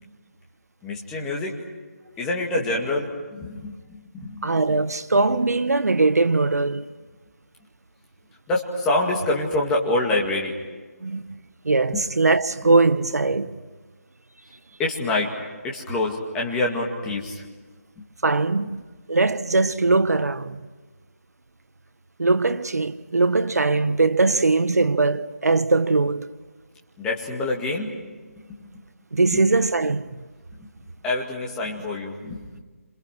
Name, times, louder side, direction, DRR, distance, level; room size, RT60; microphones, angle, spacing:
voice 1, 0.8-1.6 2.2-4.5 8.5-10.5 11.9-12.0 14.8-15.3 15.6-17.4 27.0-27.9 31.0-32.6, left 2 dB, 5° left, 2.1 m, -26 dB
voice 2, 4.4-6.8 11.0-11.2 11.6-13.6 18.2-18.8 19.1-20.6 22.2-26.3 29.1-30.1, right 3 dB, 80° right, 1.4 m, -21 dB
29.5 x 27.0 x 6.1 m
figure-of-eight pair, 175°, 8 cm